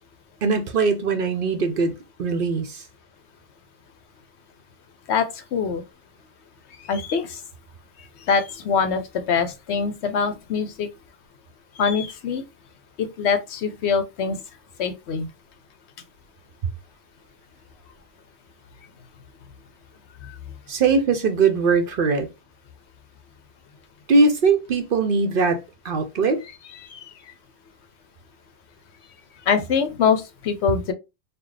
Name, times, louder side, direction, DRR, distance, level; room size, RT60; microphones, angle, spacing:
voice 1, 0.4-1.9 2.2-2.8 20.7-22.3 24.1-25.6 25.8-26.4, right 4 dB, 55° right, 0.7 m, -20 dB
voice 2, 5.1-5.8 6.9-7.4 8.3-9.0 9.3-10.9 11.8-12.4 13.0-14.4 14.8-15.3 20.2-20.4 26.8-27.0 29.5-30.9, left 6 dB, 70° left, 0.9 m, -23 dB
4.2 x 2.2 x 3.3 m
omnidirectional pair, 1.2 m